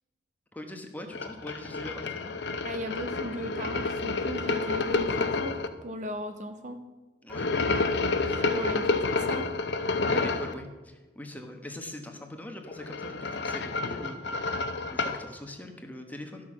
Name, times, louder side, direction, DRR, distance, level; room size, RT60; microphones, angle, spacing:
voice 1, 0.5-2.3 7.2-7.5 8.2-8.8 10.0-14.5 14.9-16.5, left 1 dB, 10° left, 4 dB, 1.0 m, -42 dB
sound 1, 1.1-5.7 7.3-10.5 12.6-15.2, left 3 dB, 65° left, 0.7 m, -29 dB
voice 2, 2.6-6.8 8.3-9.5, equal, 40° right, 7 dB, 0.8 m, -37 dB
12.5 x 6.2 x 6.1 m, 1.2 s
head